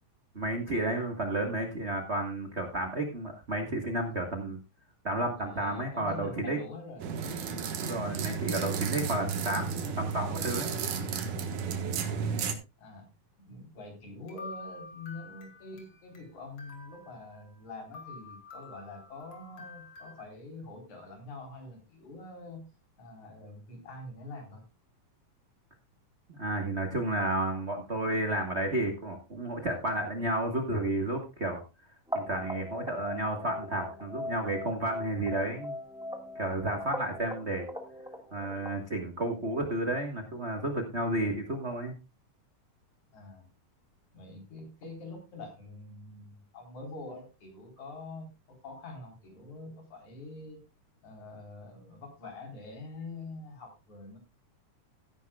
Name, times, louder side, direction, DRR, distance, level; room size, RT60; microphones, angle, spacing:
voice 1, 0.3-4.6 5.0-6.6 7.8-10.8 26.3-31.6 32.1-35.7 36.3-37.7 38.3-41.9, right 1 dB, 40° right, 3 dB, 0.9 m, -32 dB
voice 2, 5.4-7.2 12.8-13.1 13.5-22.6 23.0-24.6 43.1-43.5 44.1-50.6 51.0-54.2, left 2 dB, 65° left, 1 dB, 5.4 m, -45 dB
sound 1, 7.0-12.5, right 6 dB, 75° right, 2.9 m, -33 dB
sound 2, 14.3-16.3 16.6-17.6 17.9-20.2, left 3 dB, 50° left, 3.4 m, -48 dB
sound 3, 32.1-38.8, left 1 dB, 5° right, 0.7 m, -40 dB
16.5 x 10.0 x 2.4 m, 0.28 s
omnidirectional pair, 3.7 m